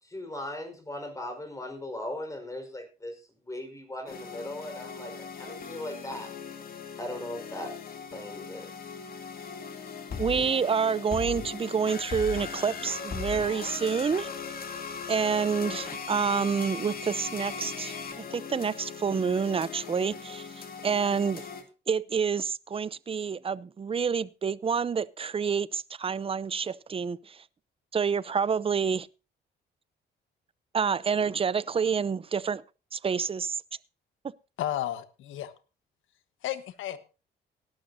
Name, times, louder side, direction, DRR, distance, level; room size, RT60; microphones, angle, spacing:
voice 1, 0.0-6.3 7.0-7.8 8.1-8.7, left 1 dB, 15° left, 4.7 m, -38 dB
sound 1, 4.1-21.6, left 6 dB, 50° left, 2.7 m, -39 dB
voice 2, 10.2-14.3 15.1-20.5 20.8-21.5 21.9-27.4 27.9-29.1 30.7-32.6 32.9-33.6, right 6 dB, 30° right, 0.6 m, -28 dB
voice 3, 34.6-35.5 36.4-37.0, left 12 dB, 85° left, 1.3 m, -33 dB
18.5 x 11.5 x 2.7 m
cardioid pair, 90°, 20 cm